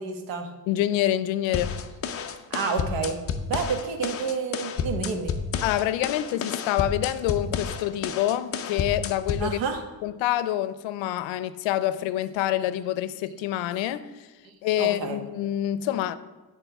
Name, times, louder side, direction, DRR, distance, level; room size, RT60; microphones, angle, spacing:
voice 1, 0.0-0.5 2.5-3.2 3.5-5.3 9.4-9.8 14.5-15.2, right 5 dB, 90° right, 1.3 m, -29 dB
voice 2, 0.7-1.7 5.6-9.6 10.0-14.3 14.6-16.2, left 13 dB, 85° left, 0.6 m, -26 dB
sound 1, 1.5-9.5, left 6 dB, 35° left, 0.5 m, -31 dB
9.3 x 4.3 x 6.0 m
cardioid pair, 150°, 44 cm